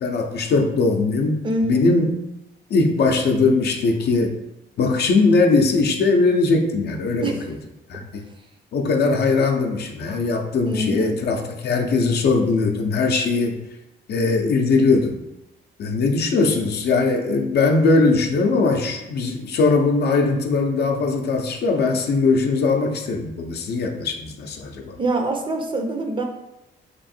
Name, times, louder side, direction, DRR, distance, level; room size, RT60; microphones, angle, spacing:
voice 1, 0.0-2.2 2.7-4.4 4.8-7.6 7.9-8.2 8.7-13.6 14.1-15.2 15.8-25.0, left 3 dB, 60° left, 3 dB, 0.6 m, -20 dB
voice 2, 1.4-1.9 7.2-7.4 10.7-11.2 25.0-26.2, right 1 dB, 25° right, 3 dB, 0.5 m, -24 dB
3.0 x 2.5 x 4.2 m, 0.93 s
cardioid pair, 110°, 19 cm